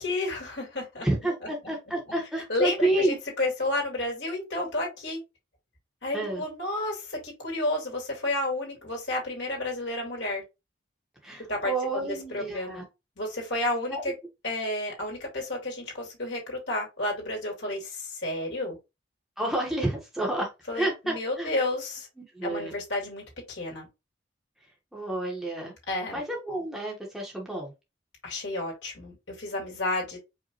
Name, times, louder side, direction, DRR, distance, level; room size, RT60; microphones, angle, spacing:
voice 1, 0.0-1.1 2.5-5.2 6.0-10.4 11.5-12.8 13.2-14.1 14.4-18.8 20.7-22.1 22.4-23.9 25.9-26.2 28.2-30.2, left 2 dB, 75° left, 2.2 m, -31 dB
voice 2, 1.0-3.2 6.1-6.4 11.2-12.8 13.9-14.0 19.4-20.5 20.7-21.5 22.2-22.7 24.9-25.7 26.1-27.7, right 1 dB, ahead, 1.0 m, -29 dB
4.9 x 2.5 x 2.9 m
head